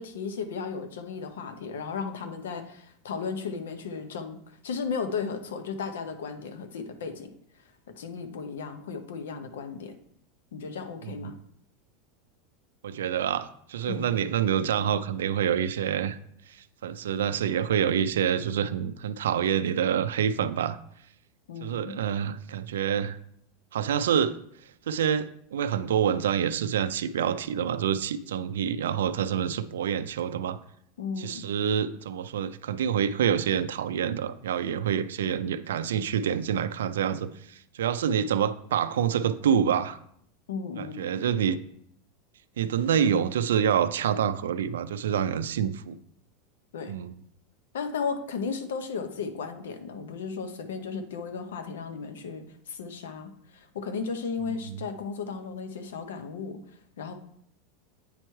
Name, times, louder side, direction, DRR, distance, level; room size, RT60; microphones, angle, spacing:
voice 1, 0.0-7.3 8.0-9.9 10.5-11.3 13.9-14.1 21.5-22.0 31.0-31.4 40.5-41.0 46.7-46.9 47.7-56.6 57.0-57.1, left 5 dB, 85° left, 9 dB, 0.7 m, -35 dB
voice 2, 11.0-11.3 12.8-16.2 16.8-20.8 21.6-23.2 23.7-24.4 24.9-30.6 31.2-40.0 40.8-41.6 42.6-45.9 46.9-47.2 54.5-54.8, right 8 dB, 90° right, 13 dB, 0.3 m, -27 dB
8.6 x 3.1 x 4.5 m, 0.67 s
supercardioid pair, 115°, 0 cm